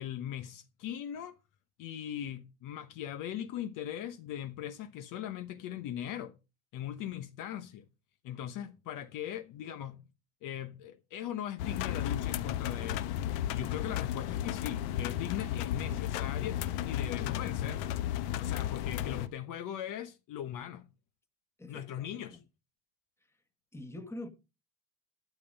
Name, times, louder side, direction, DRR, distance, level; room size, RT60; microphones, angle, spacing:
voice 1, 0.0-1.4 1.8-6.3 6.7-7.8 8.2-10.0 10.4-13.2 13.5-17.8 18.4-20.9 21.7-22.4, left 10 dB, 45° left, 1.0 m, -39 dB
sound 1, 11.6-19.3, left 11 dB, 60° left, 1.2 m, -34 dB
voice 2, 21.6-22.4 23.7-24.3, left 1 dB, 5° left, 1.5 m, -44 dB
12.5 x 7.0 x 5.3 m
supercardioid pair, 130°, 47 cm